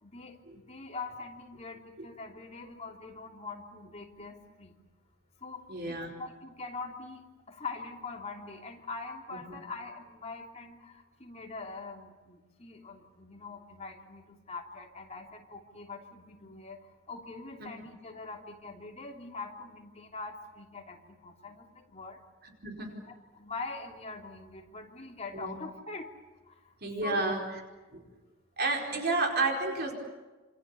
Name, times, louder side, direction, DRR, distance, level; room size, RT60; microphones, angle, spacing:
voice 1, 0.0-4.7 5.4-5.6 5.9-7.2 7.5-16.8 17.1-22.2 22.8-26.1 26.5-26.6 27.0-27.3 28.9-29.0, left 3 dB, 30° left, 1 dB, 3.3 m, -43 dB
voice 2, 5.7-6.1 9.5-9.6 22.6-23.0 25.3-25.6 26.8-27.4 27.9-28.0 28.6-29.9, right 3 dB, 50° right, 1 dB, 4.7 m, -30 dB
28.0 x 26.5 x 7.1 m, 1.2 s
head